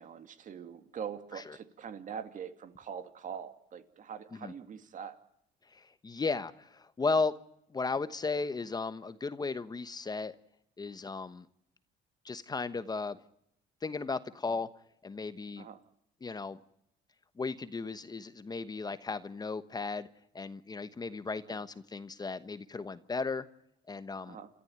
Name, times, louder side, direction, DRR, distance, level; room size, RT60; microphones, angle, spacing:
voice 1, 0.0-5.2 15.6-15.8 21.5-21.6 24.2-24.5, right 7 dB, 50° right, 9 dB, 2.4 m, -43 dB
voice 2, 5.7-7.3 7.7-10.3 10.8-11.5 12.2-13.2 13.8-14.7 15.0-15.7 16.2-16.6 17.4-20.1 20.3-23.5 23.9-24.4, left 4 dB, 25° left, 13 dB, 1.1 m, -35 dB
29.0 x 14.0 x 8.9 m, 0.77 s
cardioid pair, 110°, 17 cm